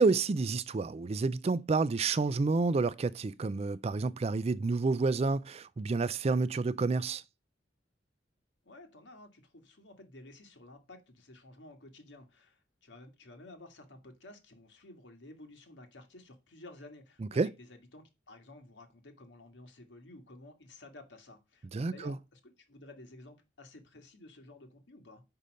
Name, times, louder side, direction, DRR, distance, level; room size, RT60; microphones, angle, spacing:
voice 1, 0.0-7.2 17.4-17.5 21.7-22.2, right 3 dB, 35° right, 0.4 m, -29 dB
voice 2, 8.6-25.2, left 2 dB, 80° left, 1.8 m, -53 dB
5.5 x 5.2 x 6.3 m
head